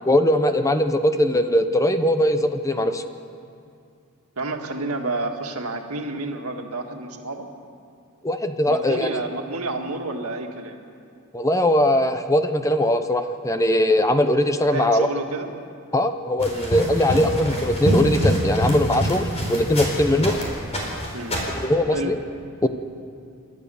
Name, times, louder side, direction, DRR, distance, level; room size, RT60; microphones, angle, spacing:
voice 1, 0.1-3.0 8.2-9.2 11.3-15.1 15.9-20.3 21.5-22.2 22.6-22.7, left 1 dB, 15° left, 8 dB, 0.7 m, -20 dB
voice 2, 4.4-7.5 8.7-10.8 14.7-15.5 16.5-16.7 20.1-20.2 21.1-21.4 21.9-22.1, right 2 dB, 80° right, 3 dB, 1.9 m, -30 dB
sound 1, 16.4-20.4 20.7-21.6, equal, 30° left, 4.3 m, -25 dB
29.0 x 12.5 x 7.0 m, 2.4 s
head